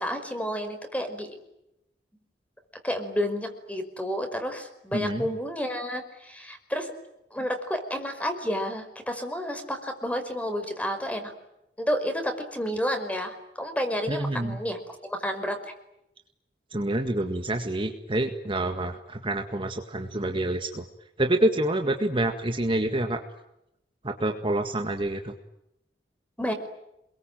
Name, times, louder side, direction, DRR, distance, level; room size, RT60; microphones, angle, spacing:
voice 1, 0.0-1.4 2.8-6.9 7.3-11.3 11.8-15.6 26.4-26.5, equal, 10° left, 6 dB, 5.2 m, -30 dB
voice 2, 4.9-5.3 14.1-14.6 16.7-20.8 21.2-23.2 24.0-25.3, right 1 dB, 30° right, 5 dB, 1.9 m, -27 dB
28.5 x 22.5 x 9.2 m, 0.84 s
head